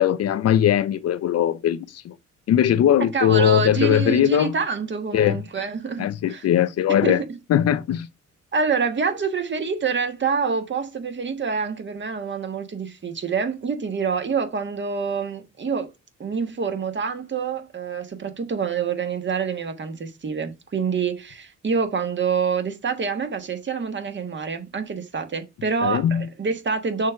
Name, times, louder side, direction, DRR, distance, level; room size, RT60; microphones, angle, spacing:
voice 1, 0.0-2.1 2.5-4.5 5.1-5.4 6.0-7.2 7.5-8.1 25.8-26.2, left 10 dB, 55° left, 0.5 m, -20 dB
voice 2, 3.0-6.5 7.0-7.3 8.5-15.9 16.2-27.1, right 5 dB, 40° right, 1.4 m, -26 dB
6.4 x 3.6 x 4.6 m
cardioid pair, 90°, 30 cm